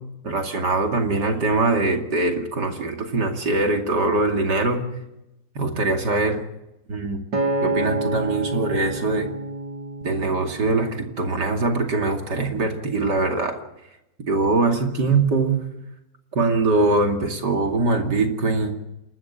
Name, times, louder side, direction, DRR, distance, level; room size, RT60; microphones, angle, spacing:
voice 1, 0.2-4.8 5.5-6.4 6.9-7.2 7.6-9.3 10.0-13.6 14.3-15.6 16.3-18.7, right 3 dB, 65° right, 3 dB, 3.1 m, -22 dB
Acoustic guitar, 7.3-11.7 12.3-12.5, right 2 dB, 80° right, 3.4 m, -29 dB
29.0 x 13.0 x 7.3 m, 0.92 s
omnidirectional pair, 2.0 m